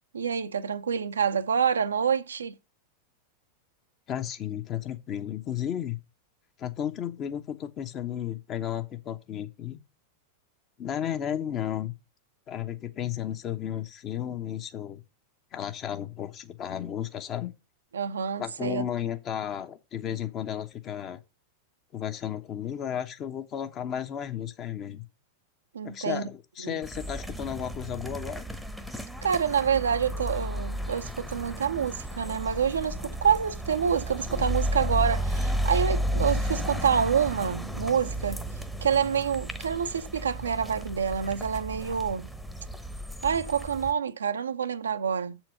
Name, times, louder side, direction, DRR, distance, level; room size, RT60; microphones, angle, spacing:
voice 1, 0.1-2.5 17.9-18.8 25.7-26.3 26.6-26.8 29.2-38.4 38.8-42.3 43.2-45.4, right 7 dB, 70° right, 0.6 m, -27 dB
voice 2, 4.1-6.0 6.6-9.8 10.8-11.9 12.5-15.0 15.5-17.5 18.4-21.2 21.9-25.0 25.8-28.4, left 10 dB, 35° left, 1.1 m, -33 dB
sound 1, 26.8-43.9, equal, ahead, 1.0 m, -33 dB
7.7 x 4.5 x 6.6 m
figure-of-eight pair, 90°, 0 cm